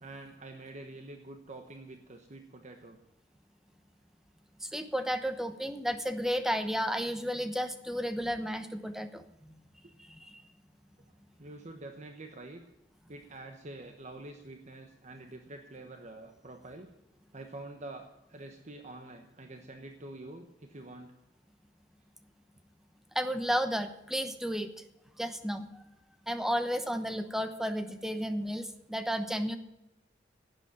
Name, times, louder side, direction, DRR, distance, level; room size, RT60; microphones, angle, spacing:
voice 1, 0.0-3.0 11.4-12.6 13.1-16.9 17.3-21.1, right 2 dB, 40° right, 5 dB, 1.2 m, -46 dB
voice 2, 4.6-9.5 10.1-10.4 23.1-24.7 25.2-25.7 26.3-29.6, equal, ahead, 9 dB, 0.9 m, -32 dB
12.0 x 8.2 x 9.8 m, 0.90 s
head